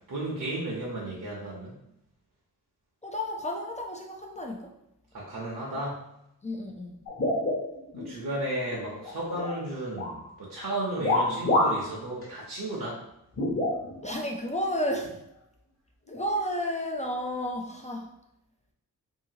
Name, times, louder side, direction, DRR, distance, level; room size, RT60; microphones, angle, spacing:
voice 1, 0.1-1.7 5.1-6.0 8.0-13.0, right 1 dB, 60° right, -5 dB, 0.8 m, -33 dB
voice 2, 3.0-4.7 6.4-7.0 14.0-15.2 16.1-18.1, equal, 20° left, 1 dB, 0.3 m, -32 dB
sound 1, 7.1-8.1 8.5-9.6 9.9-10.2 11.0-11.9 12.2-12.3 13.3-14.2 15.0-15.1 16.1-16.3, left 2 dB, 35° left, 0.9 m, -27 dB
2.8 x 2.6 x 2.7 m, 0.83 s
cardioid pair, 60°, 37 cm